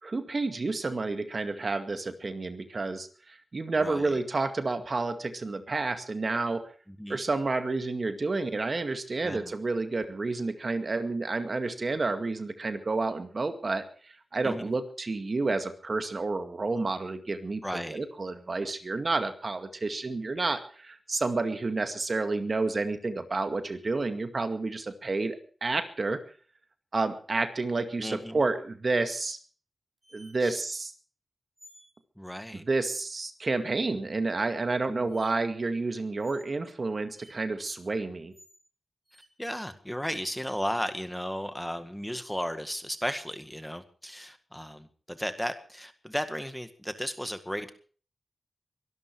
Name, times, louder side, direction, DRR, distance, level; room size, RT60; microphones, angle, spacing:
voice 1, 0.0-6.6 7.1-26.2 26.9-29.4 30.1-30.9 32.5-38.3, right 3 dB, 50° right, 8 dB, 2.1 m, -30 dB
voice 2, 3.8-4.1 6.9-7.2 9.2-9.5 14.4-14.7 17.6-18.0 28.0-28.4 30.4-30.6 32.2-32.6 34.9-35.1 39.4-47.7, equal, 5° left, 9 dB, 1.9 m, -35 dB
sound 1, 30.0-30.4 31.6-31.9 34.2-34.3 35.1-35.3 36.2-36.5 37.1-37.3 38.3-38.6 39.1-39.3 41.1-41.7 44.6-44.7, equal, 15° right, 7.1 m, -57 dB
23.5 x 12.5 x 4.7 m, 0.42 s
wide cardioid pair, 80°, 0 cm